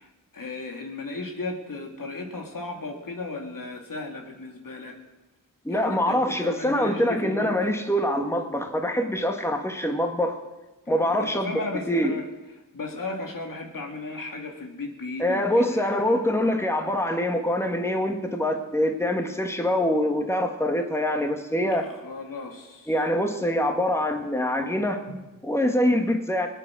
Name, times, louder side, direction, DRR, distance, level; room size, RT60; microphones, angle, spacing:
voice 1, 0.0-5.0 5.7-7.5 10.9-12.2 12.7-16.3 21.7-22.9 25.1-25.3, left 2 dB, 70° left, 2 dB, 2.4 m, -36 dB
voice 2, 5.7-10.4 10.9-11.5 11.9-12.2 15.2-21.9 22.9-25.0 25.4-26.5, left 1 dB, 10° left, 4 dB, 1.9 m, -24 dB
20.5 x 9.0 x 6.3 m, 1.1 s
cardioid pair, 50°, 34 cm